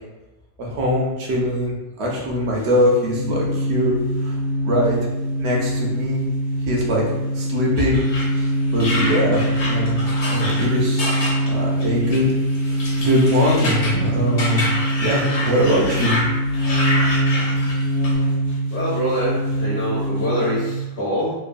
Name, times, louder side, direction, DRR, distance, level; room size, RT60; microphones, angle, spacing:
voice 1, 0.6-4.0 4.2-4.3 4.6-5.0 5.4-6.3 6.7-7.0 7.3-10.0 10.3-11.1 11.4-12.2 13.0-14.7 15.0-16.2, equal, 70° right, -3 dB, 1.0 m, -22 dB
sound 1, 2.5-20.8, equal, 20° left, 0.6 m, -23 dB
sound 2, 7.8-16.2 16.5-18.1, left 1 dB, 85° left, 1.1 m, -28 dB
voice 2, 18.7-21.3, equal, 55° left, -9 dB, 1.1 m, -24 dB
3.1 x 2.1 x 2.5 m, 1.1 s
omnidirectional pair, 1.1 m